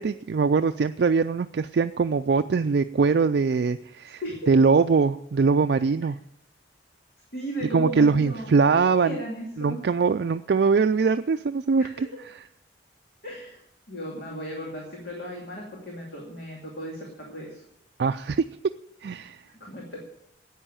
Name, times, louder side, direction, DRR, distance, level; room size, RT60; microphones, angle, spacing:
voice 1, 0.0-4.2 4.5-6.2 7.7-9.2 9.6-12.3 18.0-18.4 19.0-19.4, right 4 dB, 60° right, 8 dB, 0.4 m, -22 dB
voice 2, 4.2-4.5 7.3-9.8 11.8-12.0 13.2-17.6 19.6-20.0, equal, 55° left, -2 dB, 2.6 m, -36 dB
10.0 x 8.9 x 8.7 m, 0.79 s
head